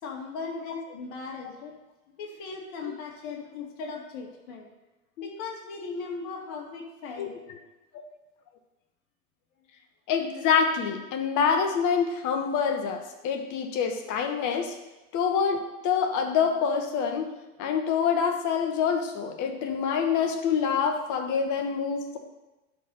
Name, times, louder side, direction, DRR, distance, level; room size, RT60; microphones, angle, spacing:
voice 1, 0.0-1.8 2.2-4.7 5.2-7.4, left 4 dB, 60° left, 1 dB, 2.3 m, -38 dB
voice 2, 10.1-14.7 15.1-15.6 15.8-17.3 17.6-22.2, left 6 dB, 45° left, 5 dB, 1.3 m, -26 dB
11.5 x 4.2 x 5.5 m, 1.1 s
hypercardioid pair, 95°, 43 cm